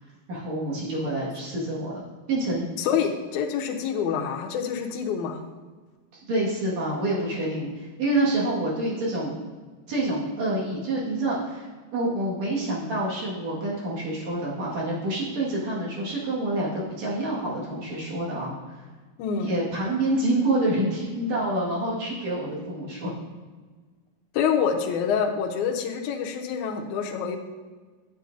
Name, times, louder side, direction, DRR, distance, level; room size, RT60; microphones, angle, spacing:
voice 1, 0.3-2.7 6.1-9.4 9.9-11.7 11.9-18.9 19.4-23.1, right 1 dB, 55° right, -5 dB, 2.6 m, -27 dB
voice 2, 2.8-5.4 19.2-19.5 24.3-27.4, left 7 dB, 90° left, 2 dB, 1.7 m, -26 dB
9.4 x 8.3 x 2.6 m, 1.4 s
omnidirectional pair, 4.4 m